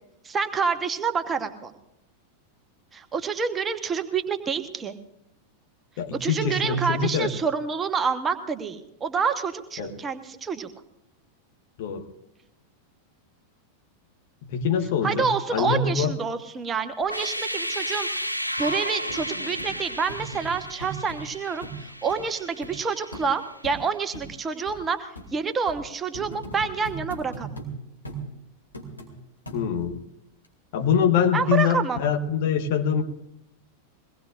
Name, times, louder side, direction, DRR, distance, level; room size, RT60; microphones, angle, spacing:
voice 1, 0.2-1.7 2.9-4.9 6.1-10.7 15.0-18.3 18.6-27.5 31.3-32.0, right 5 dB, 20° right, 1.1 m, -28 dB
voice 2, 6.0-7.3 9.8-9.9 11.8-12.0 14.4-16.1 29.5-30.0 30.7-33.0, left 7 dB, 50° left, 1.5 m, -24 dB
sound 1, 17.0-23.9, equal, 90° right, 0.9 m, -33 dB
sound 2, 18.6-18.7 19.1-19.2 19.6-19.7 20.1-21.2 21.6-21.8 22.1-22.2 22.6-22.7 23.1-23.3 23.6-23.8 24.1-24.3 24.7-24.8 25.1-25.3 25.7-25.8 26.1-27.7 28.0-28.2 28.7-29.1 29.5-29.9 30.4-30.5, right 2 dB, 80° left, 2.6 m, -38 dB
23.0 x 18.5 x 2.5 m
figure-of-eight pair, 90°, 0 cm